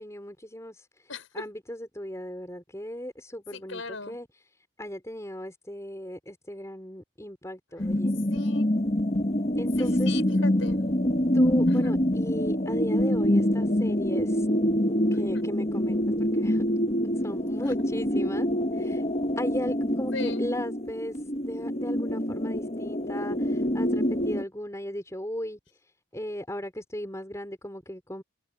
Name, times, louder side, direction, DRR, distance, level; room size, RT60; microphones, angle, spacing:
voice 1, 0.0-4.4 4.8-8.1 9.6-10.1 11.3-14.5 15.1-19.0 19.4-25.6 26.1-28.2, equal, 15° left, 4.9 m, -37 dB
voice 2, 3.5-4.2 8.3-8.7 9.8-10.8 11.7-11.9 15.1-15.4 20.1-20.5, left 4 dB, 85° left, 6.0 m, -39 dB
sound 1, 7.8-24.4, equal, 35° left, 1.5 m, -26 dB
head